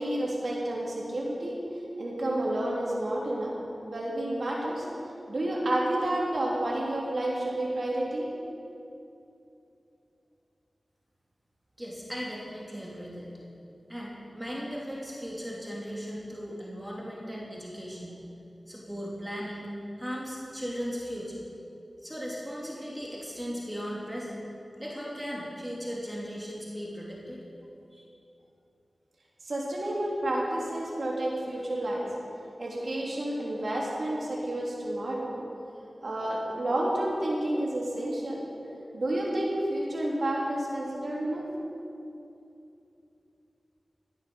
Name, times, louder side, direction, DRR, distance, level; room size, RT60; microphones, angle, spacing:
voice 1, 0.0-1.5 2.0-3.5 3.8-4.9 5.3-8.3 29.4-32.0 32.6-35.3 36.0-38.4 38.9-41.5, right 1 dB, 65° right, -4 dB, 3.2 m, -30 dB
voice 2, 11.8-13.3 13.9-18.2 18.7-21.5 22.0-24.4 24.8-27.4 27.9-28.0, equal, 5° right, -4 dB, 3.1 m, -37 dB
15.5 x 9.5 x 7.0 m, 2.7 s
wide cardioid pair, 60°, 0 cm